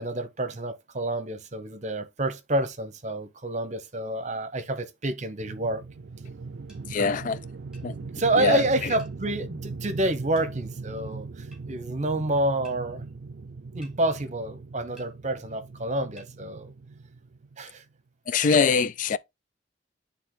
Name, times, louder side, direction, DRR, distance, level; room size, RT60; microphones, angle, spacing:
voice 1, 0.0-5.8 8.1-13.0 13.7-16.7 17.6-17.8, right 1 dB, 40° right, 0.9 m, -28 dB
sound 1, 5.4-17.6, right 4 dB, 65° right, 0.4 m, -40 dB
sound 2, 6.7-6.8 7.7-7.9 9.0-9.2 10.3-10.5 11.5-11.6 12.6-12.8 13.8-14.0 15.0-15.1 16.2-16.3, equal, 5° right, 3.0 m, -53 dB
voice 2, 6.9-7.4 7.8-8.0 8.4-8.9 18.3-19.2, left 5 dB, 45° left, 0.3 m, -24 dB
10.0 x 3.5 x 3.0 m
head